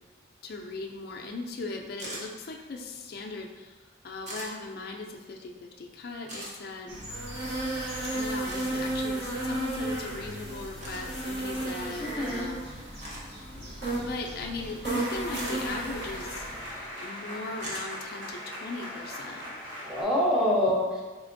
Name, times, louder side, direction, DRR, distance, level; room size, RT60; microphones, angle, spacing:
voice 1, 0.4-3.8 4.0-7.0 8.1-13.2 13.6-16.5 17.0-19.5, left 3 dB, 50° left, 2 dB, 0.4 m, -38 dB
sound 1, 2.0-2.3 4.3-4.5 6.3-6.5 8.5-8.7 10.8-11.0 13.0-13.3 15.3-15.6 17.6-17.9, right 1 dB, 40° right, 0.8 m, -39 dB
sound 2, 6.9-16.8, right 1 dB, 60° right, 0.9 m, -34 dB
voice 2, 12.0-12.5 19.8-21.0, left 1 dB, 5° right, -5 dB, 0.6 m, -26 dB
sound 3, 14.9-20.0, equal, 85° right, 1.0 m, -40 dB
3.5 x 3.3 x 2.5 m, 1.3 s
head